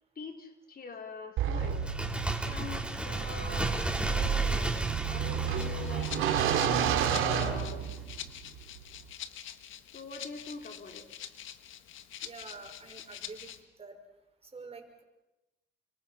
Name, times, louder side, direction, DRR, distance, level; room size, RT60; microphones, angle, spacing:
voice 1, 0.2-1.8 2.4-4.8 5.1-6.7 7.3-7.9 9.9-11.1, left 4 dB, 50° left, 4 dB, 4.2 m, -44 dB
sound 1, 1.4-8.3, right 8 dB, 90° right, 2.7 m, -30 dB
Bird, 1.7-7.2 7.5-7.6, right 1 dB, 5° right, 3.1 m, -34 dB
Rattle (instrument), 5.5-13.6, left 10 dB, 80° left, 1.7 m, -45 dB
voice 2, 12.2-13.5 13.8-14.0 14.4-15.0, right 4 dB, 30° right, 4 dB, 5.8 m, -47 dB
30.0 x 24.5 x 6.0 m, 0.97 s
cardioid pair, 90°, 20 cm